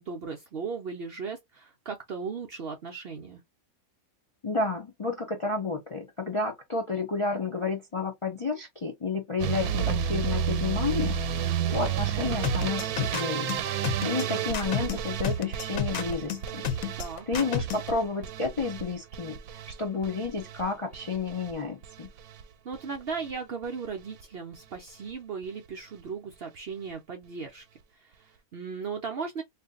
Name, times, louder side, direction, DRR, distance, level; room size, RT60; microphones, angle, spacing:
voice 1, 0.0-3.4 11.4-11.8 17.0-17.3 22.6-27.6 27.9-29.4, right 5 dB, 60° right, 0.6 m, -37 dB
voice 2, 4.4-13.5 14.0-16.7 17.3-22.1, left 4 dB, 40° left, 0.4 m, -31 dB
sound 1, 9.4-21.5 21.8-22.4 22.7-23.3 23.6-23.9 24.2-24.3 24.5-24.6, right 8 dB, 90° right, 1.1 m, -32 dB
sound 2, 12.4-17.9, left 7 dB, 75° left, 1.1 m, -31 dB
2.7 x 2.5 x 3.5 m
omnidirectional pair, 1.5 m